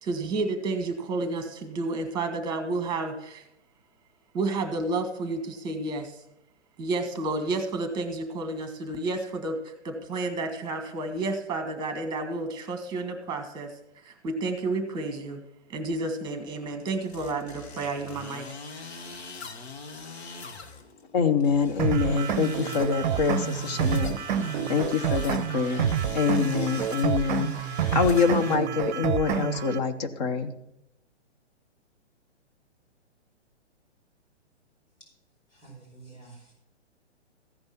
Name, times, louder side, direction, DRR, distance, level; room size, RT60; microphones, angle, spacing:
voice 1, 0.0-3.4 4.3-6.2 6.8-13.7 14.0-15.4 15.7-18.5, right 2 dB, 10° right, 7 dB, 1.5 m, -31 dB
sound 1, 16.9-28.6, left 4 dB, 65° left, 1.4 m, -43 dB
voice 2, 21.1-24.2 24.7-30.5, left 6 dB, 35° left, 8 dB, 0.9 m, -25 dB
sound 2, 21.8-29.8, right 9 dB, 40° right, 0.6 m, -28 dB
voice 3, 35.5-36.5, right 4 dB, 85° left, -4 dB, 4.7 m, -49 dB
15.0 x 5.3 x 5.9 m, 0.84 s
figure-of-eight pair, 125°, 35 cm